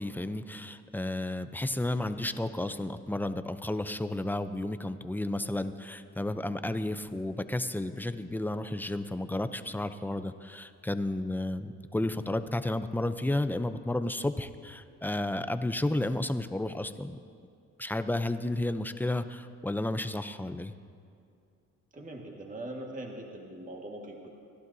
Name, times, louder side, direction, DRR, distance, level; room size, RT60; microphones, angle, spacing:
voice 1, 0.0-17.2 17.8-20.7, left 1 dB, 5° left, 10 dB, 0.5 m, -32 dB
voice 2, 21.9-24.3, right 1 dB, 25° right, 0 dB, 1.8 m, -41 dB
27.5 x 12.0 x 2.7 m, 2.5 s
cardioid pair, 90°, 30 cm